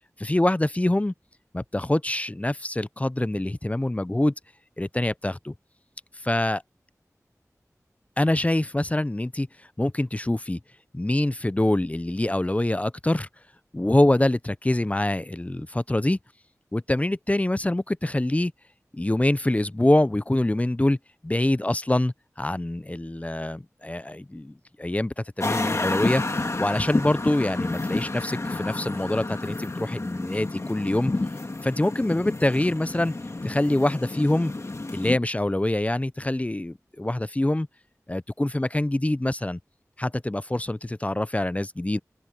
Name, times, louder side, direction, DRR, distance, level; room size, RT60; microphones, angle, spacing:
voice 1, 0.2-1.1 1.5-4.3 4.8-5.5 6.2-6.6 8.2-9.5 9.8-10.6 10.9-13.3 13.7-16.2 16.7-18.5 18.9-21.0 21.2-26.2 26.6-31.1 31.6-33.1 33.4-34.5 34.9-37.7 38.1-39.6 40.0-42.0, left 1 dB, 25° left, 0.5 m, -25 dB
sound 1, 25.4-35.2, left 2 dB, 55° left, 1.7 m, -30 dB
open air
wide cardioid pair, 55°, 6 cm